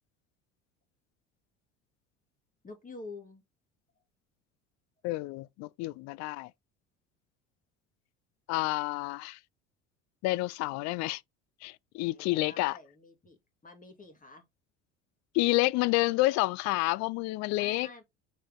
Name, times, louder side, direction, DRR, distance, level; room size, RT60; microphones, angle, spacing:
voice 1, 2.6-3.4 12.1-13.4 13.6-14.4 17.5-18.0, left 3 dB, 20° left, 2.6 m, -48 dB
voice 2, 5.0-6.5 8.5-9.4 10.2-11.2 11.6-12.8 15.3-17.9, left 21 dB, 50° left, 0.4 m, -29 dB
6.3 x 4.4 x 3.7 m
figure-of-eight pair, 65°, 37 cm